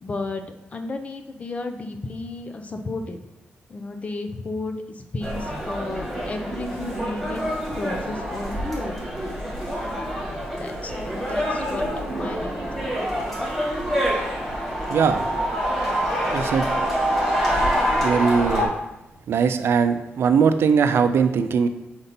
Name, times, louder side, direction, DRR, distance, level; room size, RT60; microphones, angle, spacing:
voice 1, 0.0-3.2 3.7-9.0 10.6-12.9 14.6-15.3, left 2 dB, 35° left, 6 dB, 0.6 m, -33 dB
sound 1, 5.2-18.7, equal, 5° left, 2.1 m, -26 dB
voice 2, 14.9-15.2 16.3-16.7 18.0-18.7 19.3-21.7, right 6 dB, 85° right, 9 dB, 0.4 m, -20 dB
5.3 x 4.3 x 4.1 m, 0.95 s
wide cardioid pair, 145°, 4 cm